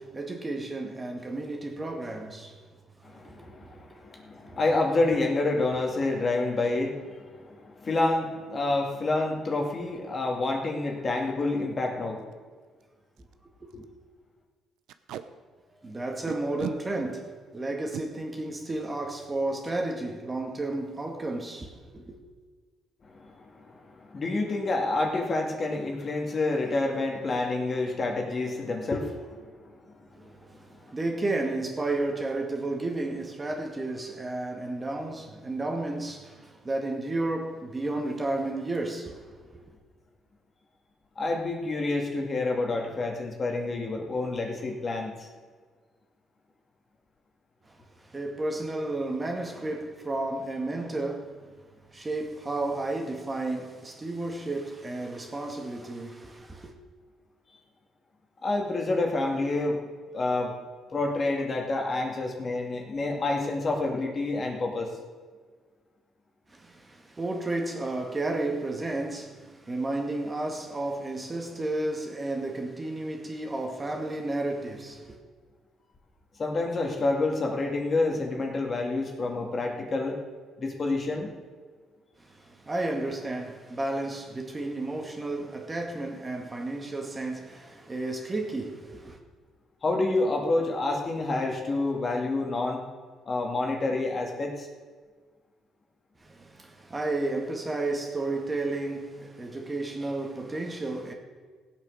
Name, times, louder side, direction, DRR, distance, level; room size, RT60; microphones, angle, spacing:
voice 1, 0.0-2.6 3.2-3.5 3.9-4.0 4.5-4.6 13.6-13.9 15.8-22.2 30.2-39.3 39.5-39.6 47.7-47.8 48.0-51.4 51.9-56.7 66.5-75.2 82.2-89.2 96.2-101.1, right 2 dB, 20° right, 2.0 m, -32 dB
voice 2, 3.0-12.3 23.0-30.4 30.7-30.8 41.2-45.3 58.4-59.8 60.1-60.5 60.9-64.9 76.4-80.2 80.6-81.3 89.8-92.8 93.3-94.7, left 2 dB, 35° left, 2.2 m, -28 dB
Packing tape duct tape, 11.2-11.4 11.9-12.0 12.2-12.3 12.8-12.9 13.2-13.3 13.7-13.9 14.9-15.2 16.3-16.8 17.7-18.0 19.6-19.8 20.1-20.3 20.6-21.0, right 11 dB, 80° right, 0.7 m, -38 dB
16.0 x 8.3 x 6.5 m
cardioid pair, 95°, 0 cm